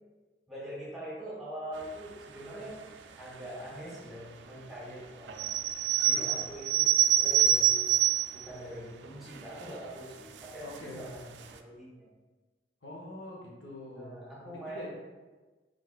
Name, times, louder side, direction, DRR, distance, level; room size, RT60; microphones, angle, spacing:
voice 1, 0.5-2.8 3.1-5.5 6.0-7.9 8.3-12.1 13.9-14.9, right 1 dB, ahead, -7 dB, 1.3 m, -43 dB
sound 1, 5.3-8.5 9.0-9.1 9.3-9.8 10.4-10.8 11.2-11.3 11.4-11.5, right 10 dB, 90° right, 0.4 m, -26 dB
voice 2, 6.1-6.4 10.6-11.0 12.8-14.9, left 1 dB, 85° left, -3 dB, 1.2 m, -45 dB
4.6 x 4.6 x 2.5 m, 1.3 s
head